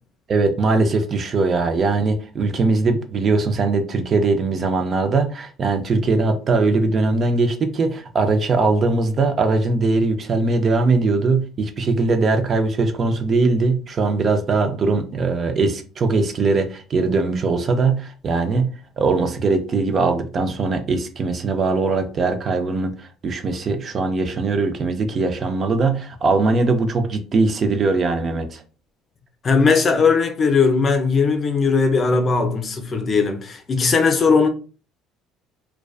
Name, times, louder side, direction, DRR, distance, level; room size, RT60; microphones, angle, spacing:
voice 1, 0.3-18.7 19.0-28.6, right 3 dB, 40° right, 0.4 m, -20 dB
voice 2, 29.4-34.5, left 4 dB, 35° left, 0.5 m, -18 dB
2.3 x 2.2 x 2.3 m
supercardioid pair, 95°, 0 cm